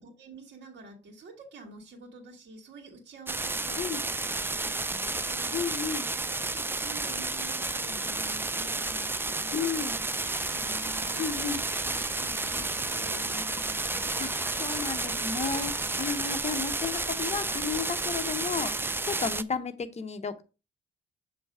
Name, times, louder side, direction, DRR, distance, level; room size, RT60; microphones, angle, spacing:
voice 1, 0.0-5.8 6.5-9.8 10.2-14.2, right 2 dB, 60° right, 1 dB, 1.9 m, -48 dB
sound 1, 3.3-19.4, right 3 dB, 10° right, 0.3 m, -31 dB
voice 2, 5.5-6.1 9.5-10.0 11.2-11.6 14.2-20.4, left 6 dB, 35° left, 8 dB, 0.9 m, -33 dB
sound 2, 10.2-16.2, equal, 5° left, 1.4 m, -45 dB
6.8 x 3.3 x 4.9 m, 0.32 s
cardioid pair, 90°, 20 cm